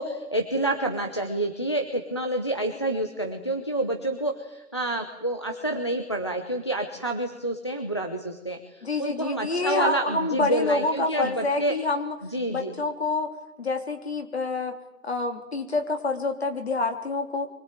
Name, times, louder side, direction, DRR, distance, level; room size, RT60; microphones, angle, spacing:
voice 1, 0.0-11.7 12.3-12.7, right 1 dB, 20° left, 3 dB, 0.9 m, -28 dB
voice 2, 8.8-12.1 12.5-13.3 13.6-14.8 15.0-17.5, left 3 dB, 40° left, 5 dB, 3.4 m, -27 dB
24.5 x 21.0 x 9.1 m, 0.99 s
figure-of-eight pair, 170°, 46 cm